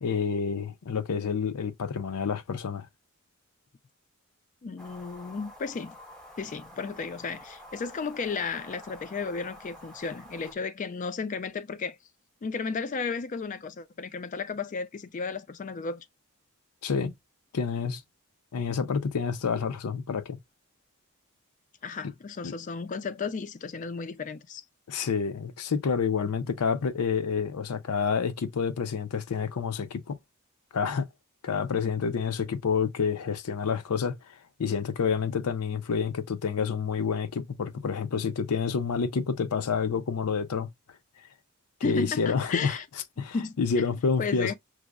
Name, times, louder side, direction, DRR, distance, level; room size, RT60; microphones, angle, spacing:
voice 1, 0.0-2.9 16.8-17.1 17.5-18.0 18.5-20.4 22.4-22.5 24.9-30.2 30.7-31.1 31.4-40.7 41.8-42.8 43.2-44.5, left 5 dB, 90° left, 0.5 m, -28 dB
voice 2, 4.6-6.0 6.4-12.0 12.4-16.0 21.8-24.6 41.8-42.8 43.3-43.8 44.2-44.5, left 5 dB, 35° left, 0.3 m, -34 dB
sound 1, 4.8-10.5, left 1 dB, 5° left, 0.7 m, -48 dB
6.0 x 2.0 x 2.3 m
head